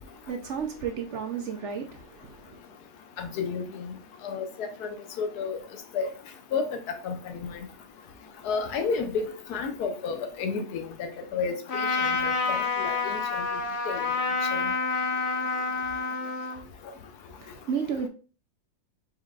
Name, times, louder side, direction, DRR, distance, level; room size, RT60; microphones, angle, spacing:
voice 1, 0.2-2.6 17.4-18.1, right 6 dB, 65° right, 0.8 m, -33 dB
voice 2, 3.2-3.9 4.2-5.6 5.9-6.1 6.5-7.7 8.4-13.2 13.9-14.1 14.5-14.7, left 5 dB, 90° left, 1.3 m, -32 dB
Trumpet, 11.7-16.6, left 4 dB, 50° left, 1.0 m, -28 dB
4.7 x 4.4 x 2.4 m
omnidirectional pair, 1.6 m